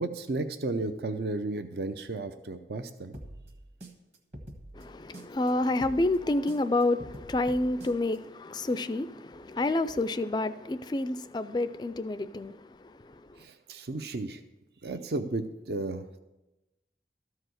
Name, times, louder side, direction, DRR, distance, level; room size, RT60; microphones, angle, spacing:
voice 1, 0.0-3.1 13.4-14.4 14.8-16.2, right 2 dB, 65° right, 0.5 m, -33 dB
sound 1, 3.1-5.5 5.8-8.2, right 1 dB, 40° right, 1.4 m, -45 dB
voice 2, 4.7-13.2, left 2 dB, 25° left, 0.3 m, -29 dB
13.5 x 4.8 x 7.8 m
head